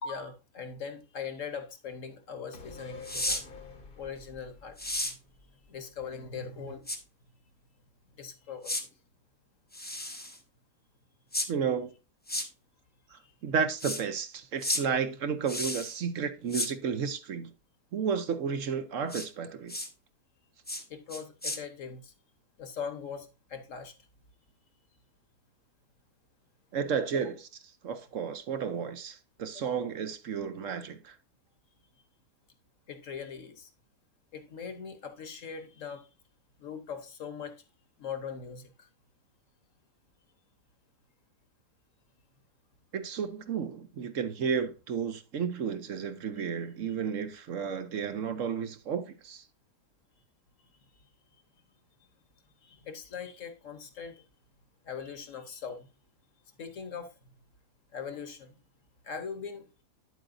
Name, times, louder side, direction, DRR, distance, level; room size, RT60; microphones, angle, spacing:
voice 1, 0.0-3.4 4.0-5.2 5.7-6.9 8.2-8.7 13.1-13.3 20.9-22.1 22.6-23.9 27.1-27.3 29.6-29.7 32.9-33.7 34.3-36.1 36.6-37.6 38.0-38.9 46.9-47.0 52.6-54.2 54.8-55.9 56.6-57.1 57.9-58.6 59.0-59.7, left 6 dB, 60° left, 1.5 m, -41 dB
sound 1, 2.5-6.1 6.4-6.5, left 4 dB, 40° left, 1.1 m, -49 dB
sound 2, 3.0-3.4 4.8-5.1 6.9-7.0 8.6-8.8 9.7-10.4 11.3-11.5 12.3-12.5 13.8-14.0 14.6-14.8 15.5-16.0 16.5-16.7 19.1-19.3 19.7-19.9 20.7-20.8 21.1-21.6, left 1 dB, 10° left, 0.7 m, -33 dB
voice 2, 11.5-11.9 13.1-17.5 17.9-19.8 26.7-27.4 27.8-31.2 42.9-49.4, right 6 dB, 65° right, 1.1 m, -32 dB
9.0 x 7.9 x 2.6 m
omnidirectional pair, 1.5 m